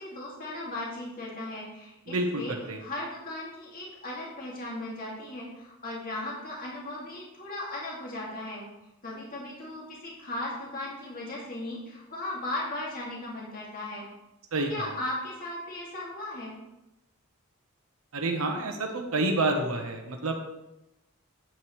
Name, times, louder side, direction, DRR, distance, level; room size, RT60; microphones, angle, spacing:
voice 1, 0.0-2.5 2.8-8.6 9.0-14.1 14.5-16.5, left 1 dB, 45° left, -5 dB, 2.3 m, -37 dB
voice 2, 2.1-2.8 14.5-14.7 18.1-20.3, right 2 dB, 90° right, 3 dB, 1.1 m, -28 dB
8.9 x 8.9 x 3.2 m, 0.94 s
head